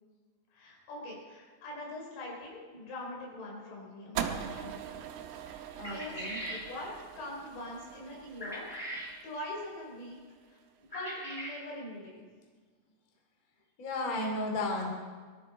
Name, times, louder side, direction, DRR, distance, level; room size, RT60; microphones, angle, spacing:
voice 1, 0.5-5.1 5.4-6.2 6.5-8.7 9.2-10.2 10.5-12.3, left 1 dB, 85° left, -2 dB, 7.3 m, -43 dB
sound 1, 4.2-10.5, right 8 dB, 85° right, 3.8 m, -42 dB
voice 2, 5.8-6.4 13.8-14.9, left 2 dB, 25° left, 1 dB, 2.0 m, -34 dB
sound 2, 5.8-6.6 8.4-9.1 10.9-11.6, equal, 10° left, 3.0 m, -40 dB
22.5 x 14.0 x 4.4 m, 1.5 s
omnidirectional pair, 6.0 m